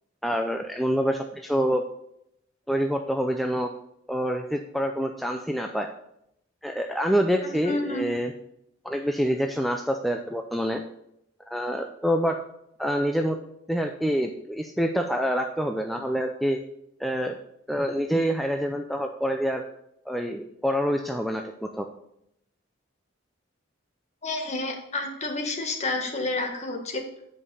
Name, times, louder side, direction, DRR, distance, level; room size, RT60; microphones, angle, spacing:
voice 1, 0.2-1.8 2.7-3.7 4.1-5.9 6.6-8.3 8.8-10.8 11.5-12.4 12.8-13.4 13.7-16.6 17.0-17.4 17.7-19.6 20.1-21.9, equal, ahead, 3 dB, 0.4 m, -26 dB
voice 2, 7.4-8.1 24.2-27.0, left 2 dB, 35° left, 2 dB, 1.6 m, -30 dB
8.6 x 5.3 x 5.5 m, 0.76 s
head